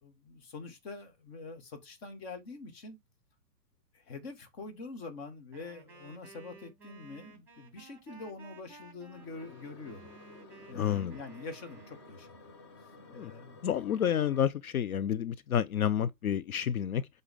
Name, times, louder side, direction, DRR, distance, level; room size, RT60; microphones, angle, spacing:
voice 1, 0.0-3.0 3.9-10.1 10.7-12.4 12.8-13.6, left 3 dB, 40° left, 2.1 m, -45 dB
Wind instrument woodwind instrument, 5.5-12.2, right 4 dB, 5° right, 3.5 m, -55 dB
Creepy Ghost Hit, 9.1-14.4, left 3 dB, 20° left, 0.6 m, -53 dB
voice 2, 10.7-11.2 13.1-13.3 13.6-17.1, left 9 dB, 60° left, 0.5 m, -30 dB
7.9 x 4.0 x 3.6 m
figure-of-eight pair, 120°, 49 cm